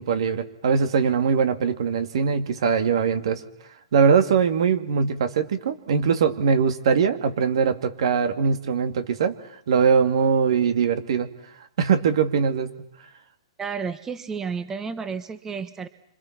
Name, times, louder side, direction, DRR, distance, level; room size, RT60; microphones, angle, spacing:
voice 1, 0.0-3.4 3.9-9.4 9.7-11.3 11.8-12.7, right 6 dB, 65° right, 8 dB, 2.4 m, -21 dB
voice 2, 13.6-15.9, right 5 dB, 15° right, 12 dB, 1.3 m, -31 dB
29.5 x 26.0 x 6.0 m, 0.72 s
hypercardioid pair, 130°, 3 cm